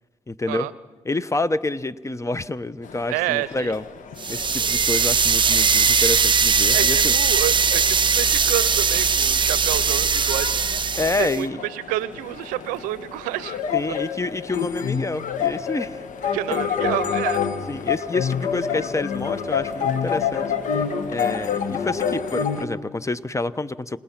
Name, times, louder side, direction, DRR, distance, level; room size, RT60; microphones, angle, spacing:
voice 1, 0.3-0.7 1.0-3.8 4.3-7.1 10.9-11.6 13.7-16.0 17.7-20.5 21.1-24.0, left 2 dB, 20° left, 16 dB, 0.9 m, -28 dB
sound 1, 2.8-22.7, left 7 dB, 70° left, 1.4 m, -29 dB
voice 2, 3.1-3.7 6.7-10.7 11.2-13.6 13.9-14.0 16.2-17.4, right 16 dB, 90° right, 17 dB, 0.6 m, -29 dB
sound 2, 4.2-11.4, right 6 dB, 35° right, 0.6 m, -20 dB
29.5 x 18.0 x 5.9 m, 1.3 s
supercardioid pair, 50°, 14 cm